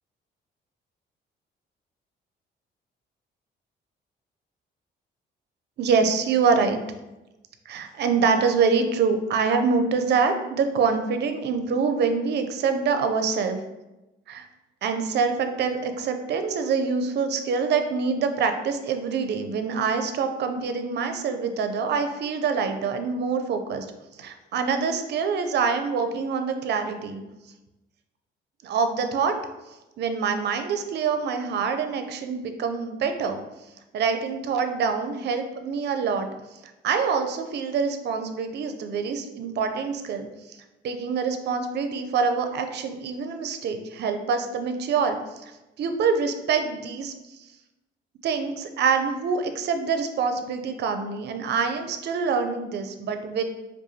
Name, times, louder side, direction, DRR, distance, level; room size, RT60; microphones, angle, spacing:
voice 1, 5.8-6.8 7.7-13.6 14.3-14.5 14.8-23.9 24.2-27.2 28.6-29.3 30.0-33.4 33.9-36.3 36.8-40.6 40.8-45.4 45.8-47.1 48.2-53.4, right 5 dB, 60° right, 7 dB, 0.5 m, -25 dB
4.8 x 2.3 x 2.7 m, 1.0 s
cardioid pair, 90°, 20 cm